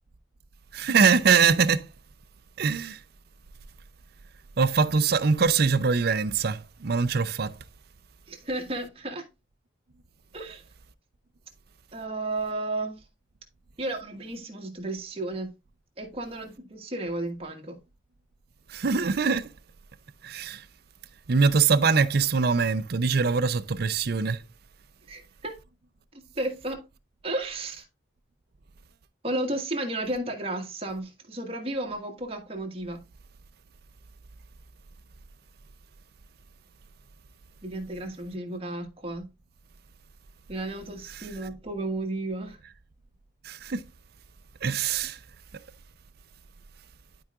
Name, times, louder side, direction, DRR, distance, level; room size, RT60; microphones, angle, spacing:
voice 1, 0.7-1.9 2.6-3.0 4.6-7.5 18.7-19.5 20.2-20.6 21.3-24.4 43.4-43.8 44.6-45.2, right 5 dB, 55° right, 0.5 m, -23 dB
voice 2, 8.3-9.2 10.3-10.6 11.9-13.0 13.8-15.5 16.0-17.8 25.1-25.6 26.3-26.8 27.2-27.8 29.2-33.0 37.6-39.3 40.5-42.6, right 2 dB, 30° right, 1.7 m, -33 dB
11.5 x 4.8 x 2.4 m
head